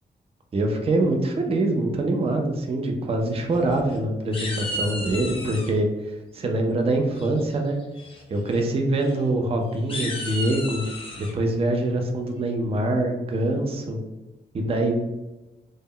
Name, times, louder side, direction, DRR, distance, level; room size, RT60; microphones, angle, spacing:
voice 1, 0.5-5.9 6.3-7.8 8.3-10.8 11.2-14.0 14.5-15.0, right 2 dB, 35° right, 3 dB, 0.4 m, -24 dB
sound 1, 3.3-4.0 4.3-5.7 7.1-7.5 8.0-8.2 8.5-8.6 9.0-9.1 9.7-11.3, left 1 dB, 30° left, 0.6 m, -33 dB
2.0 x 2.0 x 3.6 m, 1.0 s
wide cardioid pair, 130°, 18 cm